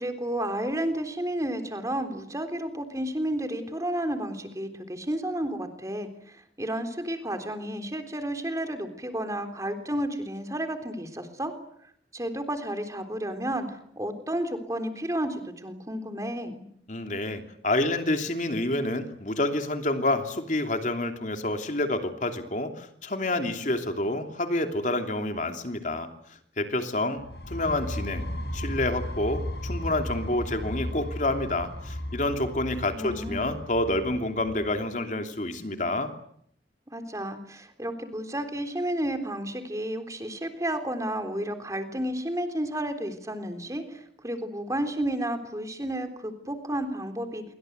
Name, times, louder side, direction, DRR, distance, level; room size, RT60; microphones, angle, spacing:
voice 1, 0.0-11.5 12.1-16.6 32.9-33.5 36.9-47.4, right 1 dB, 20° right, 7 dB, 3.5 m, -32 dB
voice 2, 16.9-26.1 26.6-28.2 28.5-36.1, left 2 dB, 45° left, 6 dB, 3.0 m, -28 dB
sound 1, 27.2-34.8, left 1 dB, 70° left, 6.8 m, -35 dB
28.0 x 23.5 x 8.1 m, 0.69 s
head